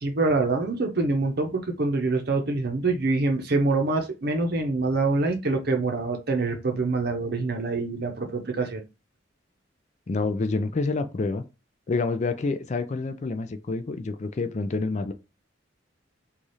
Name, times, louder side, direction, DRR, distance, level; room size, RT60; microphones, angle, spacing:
voice 1, 0.0-8.8, right 3 dB, 55° right, 0.7 m, -25 dB
voice 2, 10.1-11.4 11.9-15.1, left 3 dB, 35° left, 0.4 m, -28 dB
3.2 x 2.4 x 4.0 m
head